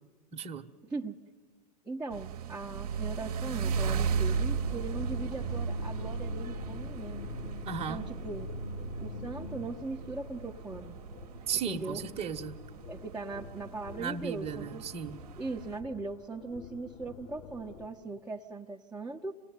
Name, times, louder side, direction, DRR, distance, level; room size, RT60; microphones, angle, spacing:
voice 1, 0.3-0.7 7.7-8.1 11.5-12.6 14.0-15.2, right 6 dB, 30° right, 6 dB, 1.2 m, -35 dB
voice 2, 0.8-1.2 1.8-7.3 7.9-8.5 9.0-11.0 11.7-12.1 12.9-14.9 15.4-19.3, right 3 dB, 5° right, -3 dB, 1.0 m, -39 dB
sound 1, 2.1-15.8, right 6 dB, 60° right, 1.0 m, -36 dB
sound 2, 3.6-9.7, left 1 dB, 85° left, 2.0 m, -41 dB
sound 3, 4.0-17.9, left 4 dB, 35° left, 1.9 m, -49 dB
26.5 x 18.0 x 9.3 m, 1.4 s
figure-of-eight pair, 90°, 21 cm